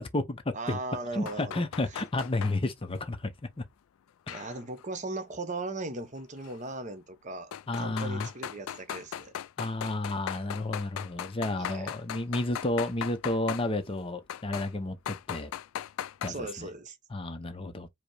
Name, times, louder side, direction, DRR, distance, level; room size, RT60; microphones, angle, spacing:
voice 1, 0.0-0.8 1.1-3.3 4.3-4.5 7.7-8.3 9.6-15.5 16.2-16.7 17.1-17.9, left 2 dB, 25° left, 0.5 m, -31 dB
voice 2, 0.5-1.6 4.3-7.5 7.8-9.3 11.6-11.9 16.3-17.0, right 2 dB, 35° right, 0.8 m, -38 dB
sound 1, 1.3-2.6 4.3-4.8 6.4-6.5 7.5-13.7 14.3-14.7 15.0-16.3, left 10 dB, 85° left, 0.3 m, -38 dB
5.0 x 2.0 x 4.6 m
head